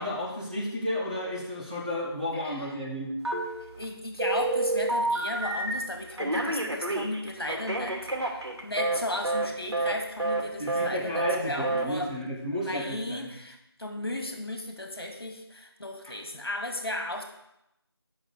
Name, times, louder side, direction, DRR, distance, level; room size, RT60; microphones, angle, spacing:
voice 1, 0.0-3.1 10.6-13.3, left 1 dB, 20° right, -3 dB, 1.5 m, -32 dB
voice 2, 2.3-2.8 3.8-12.1 12.6-17.2, left 1 dB, 60° left, 3 dB, 2.3 m, -35 dB
Telephone, 3.2-3.8 4.2-5.8 6.2-9.0 9.2-9.5 9.7-9.9 10.2-10.4 10.7-10.9 11.1-11.4 11.6-11.8, right 2 dB, 75° right, 2.6 m, -28 dB
8.7 x 6.2 x 7.1 m, 0.84 s
figure-of-eight pair, 175°, 14 cm